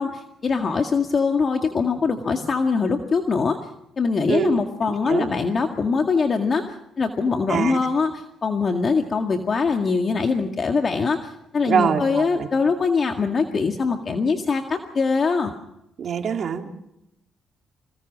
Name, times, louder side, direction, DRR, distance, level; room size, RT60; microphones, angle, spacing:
voice 1, 0.0-3.6 4.0-15.5, left 4 dB, 40° left, 4 dB, 1.9 m, -23 dB
voice 2, 4.3-4.6 5.1-5.3 7.5-7.8 11.6-12.5 16.0-16.7, right 7 dB, 60° right, 3 dB, 3.0 m, -24 dB
26.5 x 18.5 x 6.2 m, 0.86 s
cardioid pair, 90°, 0 cm